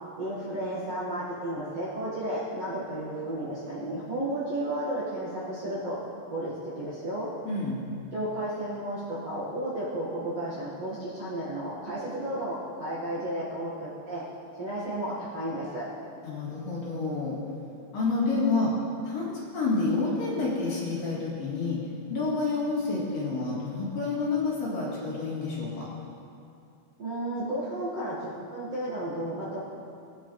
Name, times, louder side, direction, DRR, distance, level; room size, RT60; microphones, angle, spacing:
voice 1, 0.2-6.0 6.3-7.3 8.1-14.2 14.6-15.8 27.0-29.7, right 1 dB, 50° right, -10 dB, 2.1 m, -33 dB
voice 2, 7.5-7.8 16.2-17.4 17.9-18.7 19.0-21.8 22.1-25.9, left 3 dB, 60° left, -6 dB, 2.9 m, -29 dB
19.0 x 9.4 x 3.3 m, 2.6 s
omnidirectional pair, 5.3 m